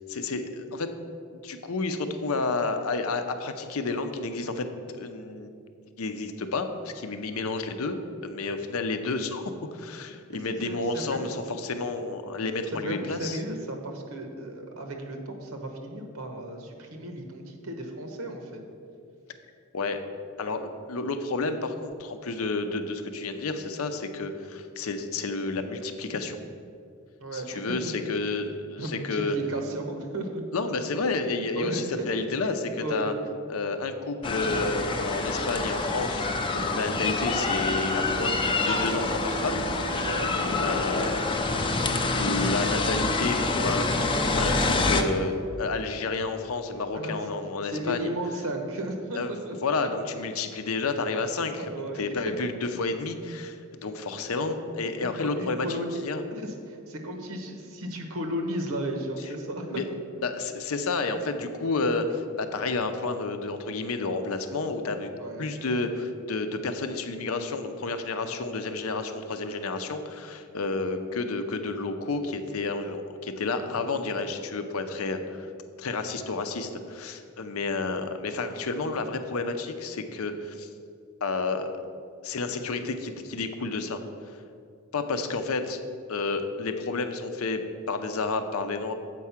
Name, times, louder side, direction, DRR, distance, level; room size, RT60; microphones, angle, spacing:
voice 1, 0.1-0.9 1.4-4.7 4.9-5.5 6.0-13.4 19.7-20.0 20.4-26.4 27.3-29.4 30.5-33.1 33.5-40.0 40.6-41.2 42.1-48.1 49.1-55.8 56.0-56.2 59.7-59.8 60.2-65.1 65.4-75.5 75.8-80.7 81.2-81.7 82.2-84.0 84.9-85.8 86.1-87.6 87.9-88.9, left 3 dB, 80° left, 8 dB, 0.6 m, -30 dB
voice 2, 10.3-11.4 12.8-18.6 27.2-27.8 28.8-30.4 31.5-31.8 32.8-33.1 40.0-40.4 46.9-47.1 47.6-49.5 51.6-52.0 52.4-52.5 55.0-56.0 56.3-59.8 65.2-65.5 68.2-68.4, right 1 dB, 90° right, 4 dB, 1.0 m, -35 dB
sound 1, 34.2-45.0, left 3 dB, 25° left, 0.5 m, -26 dB
7.6 x 4.8 x 5.7 m, 2.4 s
head